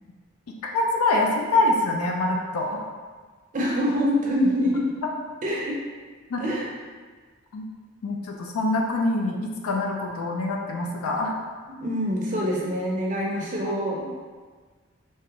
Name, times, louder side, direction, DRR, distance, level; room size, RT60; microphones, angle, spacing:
voice 1, 0.5-2.9 6.3-6.4 7.5-7.6 8.0-11.4, left 2 dB, 90° left, 1 dB, 0.4 m, -25 dB
voice 2, 3.5-4.9 5.4-5.8 6.4-6.7 11.8-14.1, equal, 35° right, -3 dB, 0.4 m, -25 dB
3.5 x 2.1 x 2.8 m, 1.5 s
head